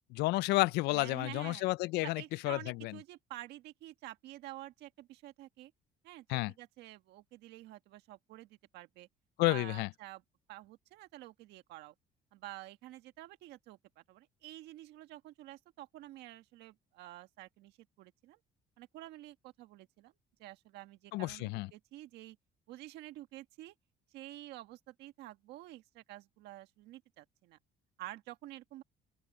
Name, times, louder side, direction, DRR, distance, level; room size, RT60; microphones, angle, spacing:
voice 1, 0.1-2.9 6.3-6.5 9.4-9.9 21.1-21.7, left 20 dB, 85° left, 0.4 m, -31 dB
voice 2, 0.9-1.6 2.0-5.7 6.0-9.1 9.4-10.2 10.5-11.9 12.3-18.4 18.8-20.1 20.4-22.4 22.7-23.7 24.1-27.6 28.0-28.8, right 16 dB, 85° right, 1.6 m, -49 dB
open air
cardioid pair, 110°, 17 cm